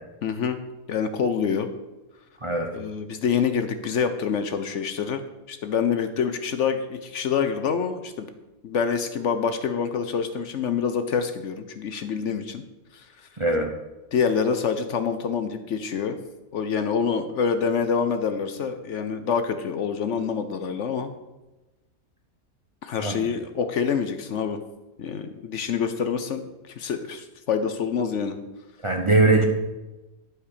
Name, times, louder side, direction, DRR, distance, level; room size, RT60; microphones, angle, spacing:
voice 1, 0.2-0.6 0.9-1.7 2.7-5.2 5.5-8.3 8.6-12.6 12.9-13.3 14.1-16.2 16.5-21.1 22.8-24.6 25.0-28.4, left 6 dB, 60° left, 9 dB, 0.9 m, -26 dB
voice 2, 13.4-13.7 23.0-23.2 28.8-29.4, right 2 dB, 25° right, 2 dB, 0.8 m, -21 dB
11.5 x 4.8 x 6.6 m, 1.1 s
omnidirectional pair, 1.5 m